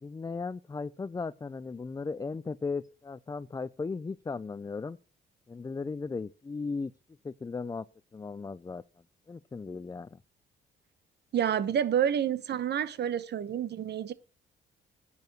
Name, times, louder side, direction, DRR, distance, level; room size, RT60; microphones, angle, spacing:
voice 1, 0.0-5.0 5.5-6.9 7.2-7.9 8.1-8.8 9.3-10.2, left 4 dB, 20° left, 0.4 m, -36 dB
voice 2, 11.3-14.1, right 9 dB, 60° right, 0.9 m, -29 dB
10.5 x 4.8 x 7.7 m
cardioid pair, 90°, 20 cm